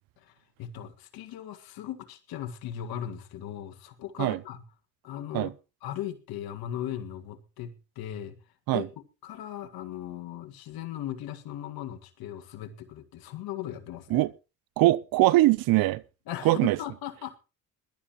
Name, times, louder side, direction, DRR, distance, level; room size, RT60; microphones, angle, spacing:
voice 1, 0.6-4.6 5.0-5.5 5.8-8.4 8.7-8.9 9.2-14.3 16.3-17.4, left 11 dB, 70° left, 1.9 m, -38 dB
voice 2, 14.8-16.0 16.4-16.8, right 17 dB, 65° right, 0.7 m, -22 dB
21.0 x 12.0 x 3.1 m
supercardioid pair, 65°, 38 cm